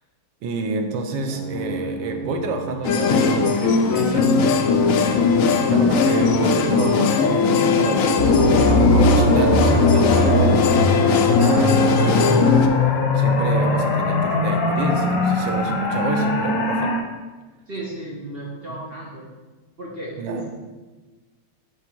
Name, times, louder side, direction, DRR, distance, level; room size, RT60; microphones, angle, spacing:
voice 1, 0.4-4.5 5.0-12.4 13.1-16.9 20.2-20.4, right 3 dB, 80° right, 4 dB, 1.5 m, -29 dB
sound 1, 1.1-11.5, right 1 dB, 55° right, 1.3 m, -34 dB
sound 2, 2.8-12.7, left 5 dB, 70° left, 0.8 m, -18 dB
sound 3, 8.2-17.0, left 2 dB, 85° left, 1.9 m, -20 dB
voice 2, 17.7-19.3 19.8-20.4, right 1 dB, 35° right, -5 dB, 1.3 m, -34 dB
9.7 x 3.4 x 4.5 m, 1.2 s
omnidirectional pair, 2.0 m